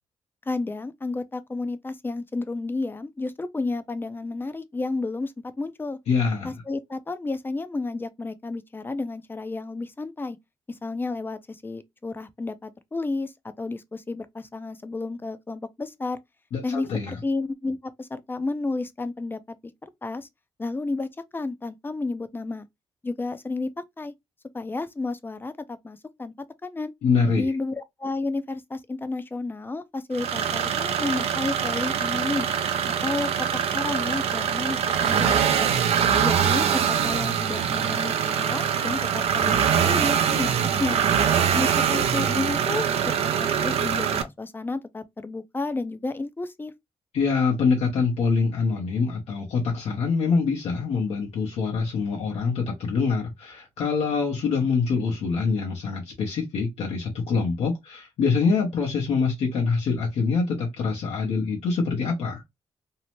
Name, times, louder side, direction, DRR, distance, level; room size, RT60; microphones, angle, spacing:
voice 1, 0.5-6.0 6.4-10.4 10.7-16.2 16.6-19.6 19.8-20.3 20.6-22.7 23.0-24.1 24.5-26.9 27.3-32.5 33.0-33.3 33.7-35.7 36.2-40.5 40.8-41.1 41.5-42.9 43.2-46.7, left 3 dB, 20° left, 0.4 m, -31 dB
voice 2, 6.1-6.5 16.5-17.2 27.0-27.5 47.1-62.4, left 5 dB, 80° left, 0.8 m, -25 dB
sound 1, 30.1-44.2, right 8 dB, 75° right, 0.4 m, -23 dB
2.7 x 2.1 x 2.9 m
cardioid pair, 75°, 11 cm